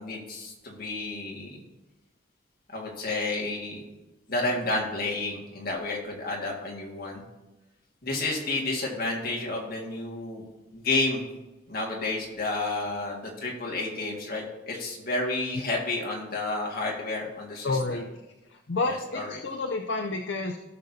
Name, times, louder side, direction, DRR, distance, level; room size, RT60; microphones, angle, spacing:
voice 1, 0.0-1.6 2.7-3.8 4.3-7.2 8.0-10.4 10.7-11.2 11.7-18.0 18.9-19.4, left 2 dB, 50° left, -2 dB, 2.0 m, -31 dB
voice 2, 17.6-18.1 18.5-20.6, left 3 dB, 65° left, 5 dB, 0.6 m, -30 dB
16.5 x 6.5 x 2.8 m, 1.0 s
head